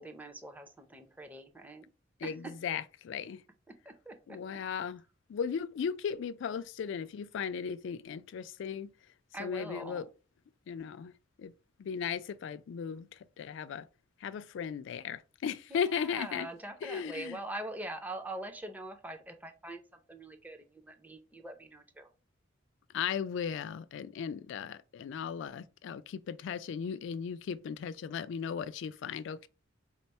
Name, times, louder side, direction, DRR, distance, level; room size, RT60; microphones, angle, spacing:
voice 1, 0.0-1.9 2.2-2.6 3.7-4.4 9.3-10.1 15.7-19.8 20.1-22.1, right 1 dB, 10° right, 0.5 m, -43 dB
voice 2, 2.2-3.4 4.3-5.0 5.3-8.9 9.4-10.1 10.7-11.1 11.4-11.5 11.8-13.9 14.2-16.5 16.8-17.4 22.9-29.5, left 7 dB, 65° left, 0.3 m, -36 dB
4.3 x 2.0 x 4.1 m
head